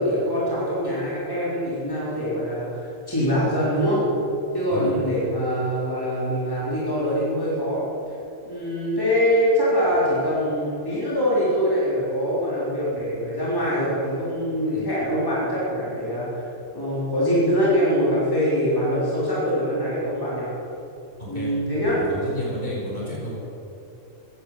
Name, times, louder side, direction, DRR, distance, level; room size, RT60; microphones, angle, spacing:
voice 1, 0.0-4.0 4.5-7.8 8.4-16.5 16.7-20.5 21.3-22.0, equal, 15° left, -8 dB, 3.7 m, -23 dB
voice 2, 4.7-5.1 14.7-14.9 21.3-21.5 21.8-23.4, equal, 40° left, -5 dB, 4.7 m, -32 dB
15.0 x 10.5 x 7.5 m, 2.9 s
omnidirectional pair, 1.4 m